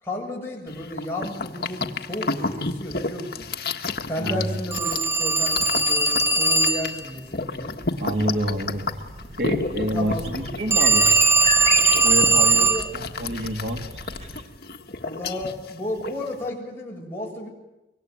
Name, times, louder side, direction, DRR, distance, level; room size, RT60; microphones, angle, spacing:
voice 1, 0.0-1.8 2.1-3.5 4.1-7.8 9.9-10.5 12.3-12.9 15.0-17.5, left 1 dB, 15° left, -3 dB, 7.7 m, -32 dB
sound 1, 0.7-16.5, left 3 dB, 60° left, 1.6 m, -32 dB
Telephone, 4.7-7.0 10.7-12.9, right 3 dB, 15° right, 1.1 m, -19 dB
sound 2, 7.2-14.4, equal, 35° right, 5.2 m, -35 dB
voice 2, 8.0-8.8 9.4-11.1 12.0-12.7 12.9-13.8, equal, 75° right, 2 dB, 3.1 m, -27 dB
25.0 x 23.5 x 9.4 m, 0.98 s
head